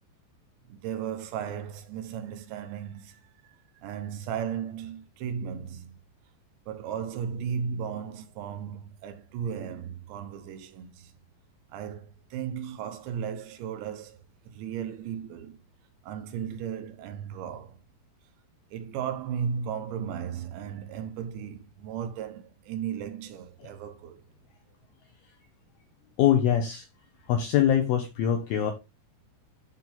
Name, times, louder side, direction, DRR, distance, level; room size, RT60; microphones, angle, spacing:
voice 1, 0.7-6.0 6.7-11.1 11.7-15.6 16.0-17.8 18.7-24.2, right 8 dB, 75° right, 3.0 m, -35 dB
voice 2, 26.2-26.9 27.3-28.7, left 10 dB, 80° left, 2.2 m, -23 dB
11.5 x 4.2 x 3.8 m
omnidirectional pair, 5.6 m